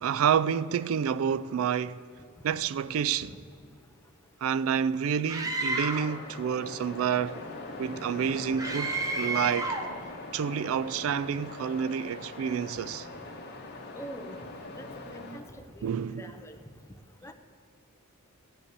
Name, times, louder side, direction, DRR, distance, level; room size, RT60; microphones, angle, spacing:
voice 1, 0.0-2.0 2.4-3.4 4.4-7.4 7.8-9.7 10.3-13.1 15.8-16.4, right 7 dB, 70° right, 0.3 m, -29 dB
Screaming, 5.3-6.2 8.6-9.9, right 2 dB, 15° right, 0.9 m, -31 dB
Waves surf, 5.5-15.4, left 2 dB, 50° left, 1.4 m, -42 dB
voice 2, 13.9-14.3 14.8-14.9 15.1-15.4 15.8-15.9 16.2-16.6 17.2-17.3, equal, 15° left, 0.7 m, -42 dB
15.0 x 5.3 x 8.2 m
head